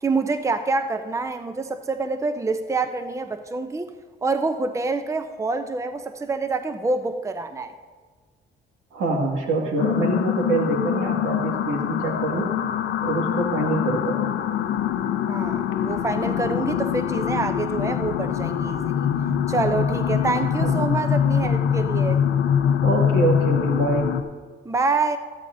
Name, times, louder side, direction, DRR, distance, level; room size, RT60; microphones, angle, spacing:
voice 1, 0.0-3.9 4.2-7.7 15.3-19.1 19.5-22.2 24.6-25.2, right 3 dB, 15° right, 9 dB, 0.6 m, -26 dB
voice 2, 8.9-12.6 13.0-14.4 20.6-20.7 22.8-24.1, right 2 dB, 85° right, 0 dB, 2.0 m, -25 dB
sound 1, 9.8-24.2, left 9 dB, 80° left, 0.7 m, -24 dB
14.0 x 12.5 x 2.7 m, 1.5 s
cardioid pair, 90°, 20 cm